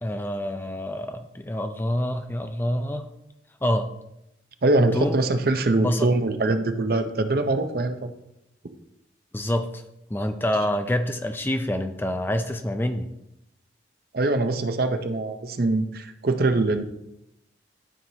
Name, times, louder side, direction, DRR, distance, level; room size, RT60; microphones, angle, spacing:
voice 1, 0.0-3.1 3.6-3.9 4.9-5.2 5.8-6.1 9.3-9.8 10.1-13.1, left 1 dB, 10° left, 7 dB, 0.4 m, -26 dB
voice 2, 4.6-8.1 8.6-8.7 14.1-16.8, right 2 dB, 50° right, 8 dB, 0.6 m, -23 dB
12.5 x 4.5 x 2.8 m, 0.83 s
head